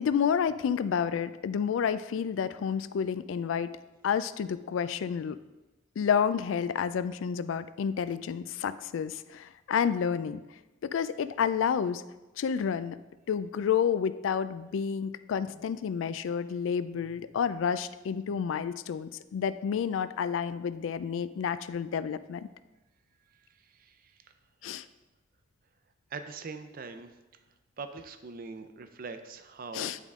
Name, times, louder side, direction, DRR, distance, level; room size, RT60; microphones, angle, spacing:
voice 1, 0.0-3.7 4.0-5.4 6.0-10.4 10.8-12.0 12.4-13.0 13.3-22.5 24.6-24.8 29.7-30.0, left 7 dB, 80° left, 14 dB, 0.3 m, -30 dB
voice 2, 23.3-24.3 26.1-27.4 27.8-29.9, right 4 dB, 50° right, 9 dB, 0.5 m, -43 dB
10.0 x 3.6 x 3.6 m, 1.1 s
head